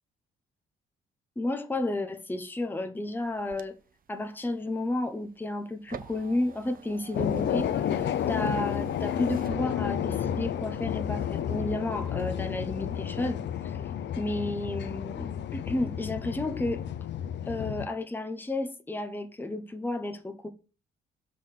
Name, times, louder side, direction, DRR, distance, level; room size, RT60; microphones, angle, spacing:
voice 1, 1.4-3.7 4.1-16.8 17.5-20.5, left 2 dB, 10° left, 1.0 m, -32 dB
sound 1, 3.2-10.3 10.7-11.7 12.1-12.6, right 7 dB, 45° right, 0.7 m, -48 dB
sound 2, 7.1-17.9, left 10 dB, 65° left, 0.6 m, -31 dB
7.3 x 4.0 x 6.5 m
cardioid pair, 90°, 20 cm